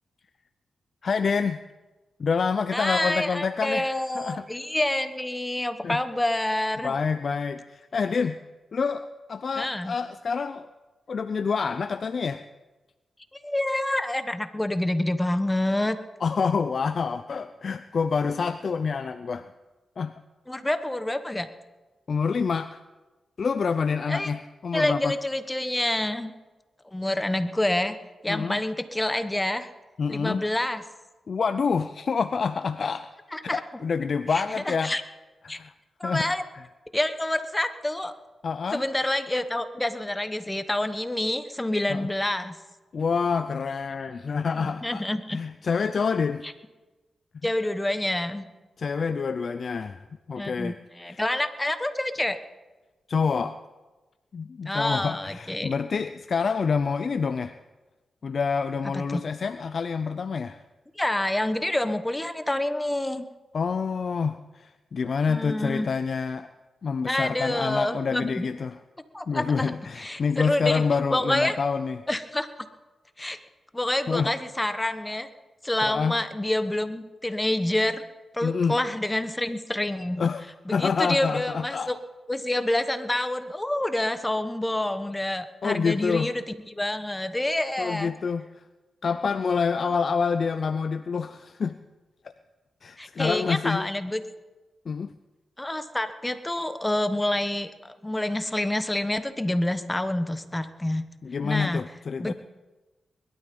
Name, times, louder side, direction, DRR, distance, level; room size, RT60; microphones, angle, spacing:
voice 1, 1.0-1.6 2.2-4.4 5.8-6.0 6.8-8.4 8.7-10.7 11.1-12.4 16.2-19.5 20.0-20.1 22.1-22.8 23.4-25.1 28.3-28.6 30.0-30.4 31.3-33.1 33.4-34.9 35.4-35.7 36.0-36.3 38.4-38.8 41.9-42.1 42.9-45.0 45.3-46.4 48.8-50.8 51.1-51.2 53.1-53.6 54.3-57.6 58.2-60.6 63.5-66.5 66.8-68.8 69.3-72.0 74.1-74.3 75.8-76.1 78.4-78.8 80.2-80.4 80.7-81.9 85.6-86.3 87.8-88.5 89.0-91.8 92.8-93.9 94.9-95.1 101.2-102.3, left 5 dB, 60° left, 11 dB, 0.5 m, -27 dB
voice 2, 2.7-6.9 9.6-9.9 13.3-16.0 20.5-21.5 24.1-24.3 24.7-26.3 26.9-28.0 28.2-29.7 30.1-30.8 33.3-33.6 34.3-35.0 35.5-35.6 36.0-36.4 36.9-38.1 38.7-42.6 44.5-45.4 47.4-48.4 50.4-52.4 54.6-55.7 58.8-59.2 61.0-63.3 65.3-65.9 67.0-68.5 69.1-70.8 71.1-71.6 72.1-72.5 73.2-73.4 73.7-75.3 75.6-78.0 78.3-80.2 80.7-82.0 82.3-88.1 89.8-90.0 93.0-94.2 95.6-101.1 101.4-101.8 102.2-102.3, left 1 dB, 15° left, 10 dB, 1.2 m, -27 dB
21.5 x 12.5 x 5.3 m, 1.2 s
cardioid pair, 70°, 0 cm